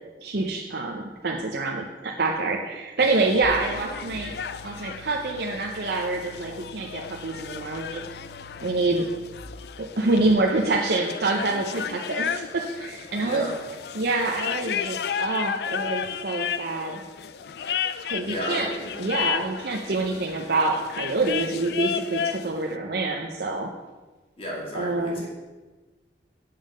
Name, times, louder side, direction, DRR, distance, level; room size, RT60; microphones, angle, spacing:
voice 1, 0.2-4.3 4.6-8.1 8.6-9.1 9.8-13.5 13.9-17.0 18.1-18.7 19.0-23.7 24.7-25.2, right 3 dB, 60° right, 1 dB, 0.7 m, -26 dB
sound 1, 3.0-22.5, left 8 dB, 60° left, 0.4 m, -33 dB
sound 2, 3.4-9.6, left 1 dB, 25° right, 1.9 m, -46 dB
voice 2, 13.2-13.5 18.2-18.7 24.4-25.3, equal, 30° left, -3 dB, 2.3 m, -33 dB
7.3 x 5.6 x 6.4 m, 1.3 s
head